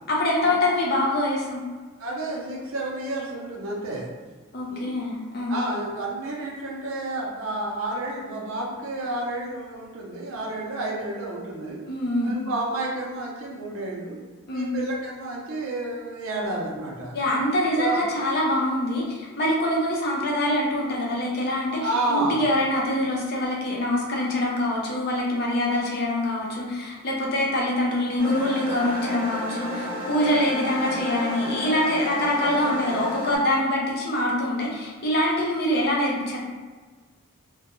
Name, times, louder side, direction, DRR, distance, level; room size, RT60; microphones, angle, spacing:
voice 1, 0.1-1.6 4.5-5.6 11.9-12.3 14.5-14.7 17.1-36.4, left 1 dB, 45° left, -3 dB, 0.5 m, -24 dB
voice 2, 2.0-4.1 4.7-4.9 5.5-11.8 12.2-14.2 14.5-17.1 17.8-18.0 21.8-22.4, right 2 dB, 65° right, -3 dB, 0.6 m, -30 dB
sound 1, 28.2-33.4, left 1 dB, 25° right, 0.6 m, -31 dB
2.2 x 2.2 x 2.9 m, 1.4 s
head